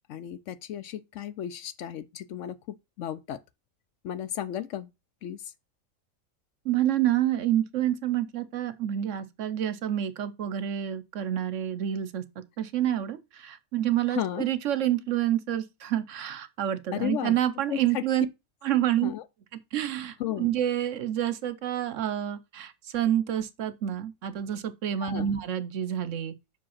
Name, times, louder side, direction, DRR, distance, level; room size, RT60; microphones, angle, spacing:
voice 1, 0.1-3.4 4.0-4.9 5.2-5.5 14.1-14.5 16.9-17.4 17.7-18.0 19.0-19.2 20.2-20.5 25.0-25.3, left 11 dB, 70° left, 0.8 m, -34 dB
voice 2, 6.6-12.2 12.6-18.3 18.6-19.1 19.7-26.3, right 11 dB, 65° right, 1.0 m, -28 dB
5.8 x 5.1 x 5.6 m
omnidirectional pair, 1.5 m